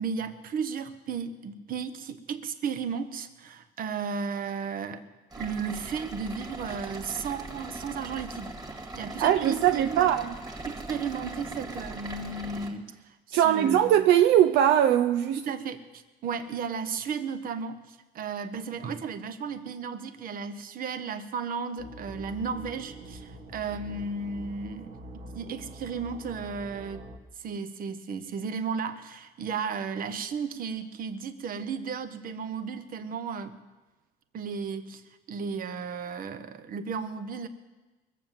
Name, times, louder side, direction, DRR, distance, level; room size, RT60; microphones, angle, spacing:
voice 1, 0.0-5.0 5.3-10.1 10.6-14.0 15.4-27.1 27.4-33.6 34.3-35.0 35.3-37.5, right 5 dB, 55° right, 1.2 m, -34 dB
sound 1, 5.3-12.7, right 2 dB, 20° right, 2.3 m, -40 dB
voice 2, 9.2-10.3 13.3-15.4, right 10 dB, 85° right, 0.6 m, -21 dB
sound 2, 21.8-27.2, equal, 40° right, 1.8 m, -45 dB
22.0 x 7.6 x 7.5 m
cardioid pair, 110°, 17 cm